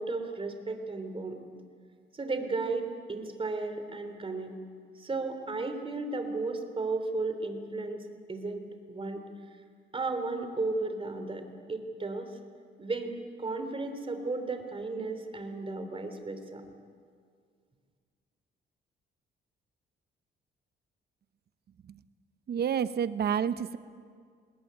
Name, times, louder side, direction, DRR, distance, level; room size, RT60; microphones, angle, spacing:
voice 1, 0.0-1.4 2.1-4.5 5.0-9.2 9.9-11.4 11.7-12.3 12.8-16.7, right 3 dB, 25° right, 7 dB, 3.1 m, -34 dB
voice 2, 22.5-23.8, right 8 dB, 55° right, 14 dB, 0.9 m, -29 dB
19.5 x 19.0 x 9.4 m, 2.1 s
cardioid pair, 90°, 20 cm